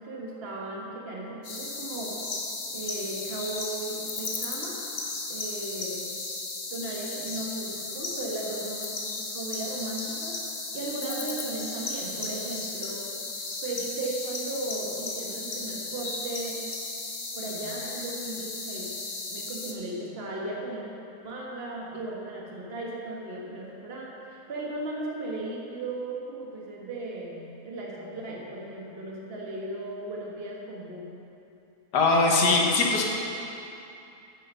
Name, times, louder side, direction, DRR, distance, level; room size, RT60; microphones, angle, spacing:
voice 1, 0.0-2.1 2.7-4.8 5.3-6.1 6.7-10.4 10.7-13.1 13.6-16.6 17.3-19.0 19.3-20.9 21.2-31.1, right 2 dB, 40° right, -3 dB, 1.5 m, -36 dB
sound 1, 1.4-19.7, left 3 dB, 40° left, 1.0 m, -35 dB
voice 2, 31.9-33.0, left 3 dB, 80° left, -1 dB, 1.8 m, -21 dB
9.0 x 8.3 x 5.5 m, 2.8 s
omnidirectional pair, 1.7 m